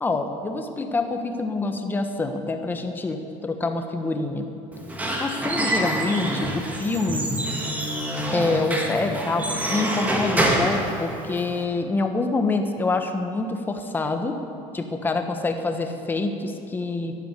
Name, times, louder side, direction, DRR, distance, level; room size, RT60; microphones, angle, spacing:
voice 1, 0.0-4.4 5.2-7.3 8.3-9.4 9.7-14.4 14.7-17.1, left 3 dB, 15° left, 6 dB, 1.3 m, -26 dB
Squeak / Wood, 4.7-11.6, right 1 dB, 10° right, 1.9 m, -26 dB
12.5 x 11.5 x 9.7 m, 2.9 s
cardioid pair, 150°, 13 cm